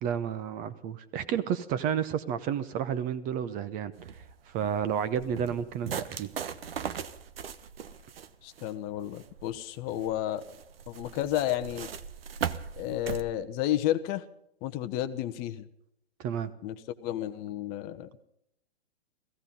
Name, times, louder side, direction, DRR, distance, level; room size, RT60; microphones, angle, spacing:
voice 1, 0.0-4.1 4.5-6.3 16.2-16.5, right 8 dB, 25° right, 14 dB, 1.0 m, -31 dB
sound 1, 4.0-13.2, right 7 dB, 60° right, 1.2 m, -39 dB
voice 2, 8.4-10.4 10.9-11.9 12.8-14.2 14.6-15.7 16.6-16.7 17.0-18.1, left 13 dB, 30° left, 11 dB, 0.9 m, -31 dB
16.5 x 16.0 x 5.3 m, 0.74 s
figure-of-eight pair, 115°, 33 cm